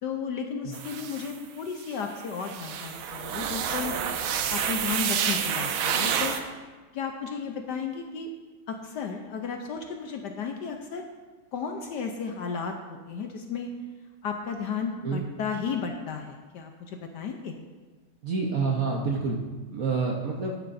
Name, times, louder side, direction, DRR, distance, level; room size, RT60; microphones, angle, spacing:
voice 1, 0.0-4.0 4.5-6.4 6.9-8.3 8.7-11.0 11.5-13.7 14.2-17.5, left 6 dB, 70° left, 4 dB, 1.1 m, -34 dB
sound 1, 0.7-1.4 1.9-2.0 2.4-6.4, right 8 dB, 80° right, 1.5 m, -29 dB
voice 2, 18.2-19.4 19.7-20.5, right 4 dB, 55° right, 0 dB, 1.0 m, -27 dB
12.5 x 9.8 x 2.6 m, 1.3 s
omnidirectional pair, 2.3 m